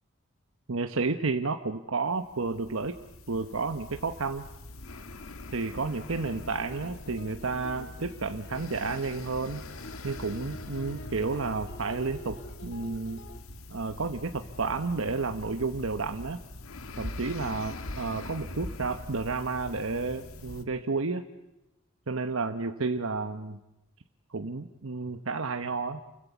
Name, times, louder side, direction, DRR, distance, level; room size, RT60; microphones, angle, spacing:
voice 1, 0.7-3.0 3.3-4.5 5.5-9.6 10.0-13.2 13.7-16.4 17.0-21.3 22.1-23.6 24.3-26.0, right 3 dB, 70° right, 7 dB, 1.1 m, -31 dB
sound 1, 2.1-20.6, left 2 dB, 85° left, 1.7 m, -43 dB
sound 2, 6.0-13.4, equal, 60° left, 1.8 m, -48 dB
29.5 x 22.0 x 8.2 m, 0.91 s
head